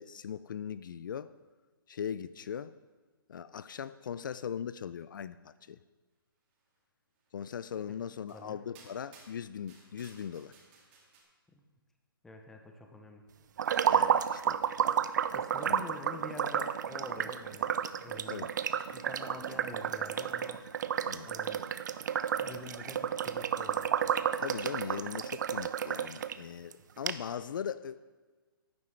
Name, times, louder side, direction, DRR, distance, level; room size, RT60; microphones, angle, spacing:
voice 1, 0.0-1.3 1.9-2.7 3.3-5.8 7.3-10.6 13.9-14.6 15.6-15.9 18.3-18.5 21.1-21.3 24.4-28.1, left 8 dB, 60° left, 16 dB, 0.4 m, -40 dB
sound 1, 7.6-7.7 8.3-8.4 8.7-11.2, right 4 dB, 25° right, 2.1 m, -58 dB
voice 2, 12.2-13.2 15.3-18.5 18.9-20.7 21.3-21.7 22.4-23.9, left 2 dB, 5° left, 3 dB, 0.6 m, -46 dB
sound 2, 13.6-26.3 26.7-26.8 27.1-27.2, right 8 dB, 50° right, 0.5 m, -31 dB
16.0 x 9.3 x 3.2 m, 1.4 s
hypercardioid pair, 160°, 12 cm